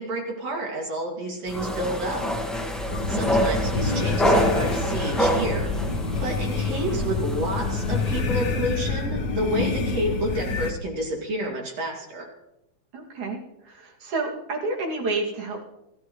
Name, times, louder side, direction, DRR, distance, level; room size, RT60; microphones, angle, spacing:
voice 1, 0.0-2.3 3.1-5.7 6.2-12.3, right 1 dB, 60° right, 0 dB, 3.6 m, -29 dB
sound 1, 1.5-8.2, equal, ahead, 0.5 m, -27 dB
sound 2, 2.9-10.7, left 3 dB, 55° left, 1.1 m, -27 dB
voice 2, 3.1-3.4 12.9-13.4 13.6-15.7, right 3 dB, 85° right, -1 dB, 4.0 m, -30 dB
28.0 x 11.5 x 3.2 m, 0.91 s
omnidirectional pair, 3.3 m